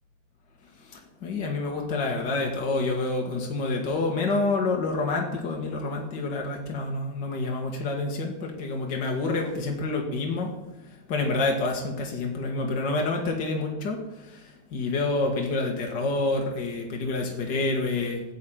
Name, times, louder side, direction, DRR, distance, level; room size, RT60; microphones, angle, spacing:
voice 1, 0.8-10.5 11.1-18.2, left 3 dB, 60° left, 1 dB, 2.4 m, -28 dB
14.0 x 6.4 x 9.0 m, 1.0 s
omnidirectional pair, 2.2 m